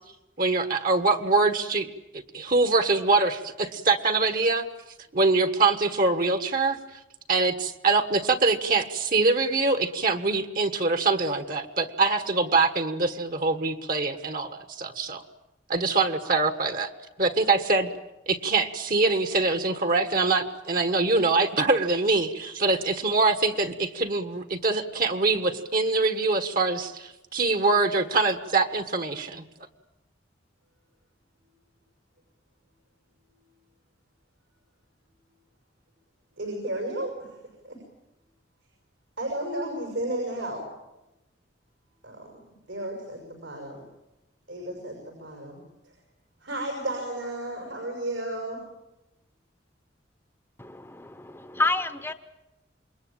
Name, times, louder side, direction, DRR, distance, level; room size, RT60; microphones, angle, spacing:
voice 1, 0.4-1.9 2.1-4.6 5.1-6.8 7.3-15.2 15.7-16.9 17.2-17.9 18.3-29.4, right 3 dB, 50° right, 8 dB, 1.4 m, -24 dB
voice 2, 36.4-37.4 37.6-37.8 39.2-40.6 42.0-42.3 42.7-43.8 44.5-45.9 46.4-48.6, right 1 dB, 85° right, 1 dB, 6.2 m, -33 dB
voice 3, 50.6-52.1, left 2 dB, 10° left, 10 dB, 0.9 m, -29 dB
27.5 x 22.0 x 8.9 m, 0.98 s
head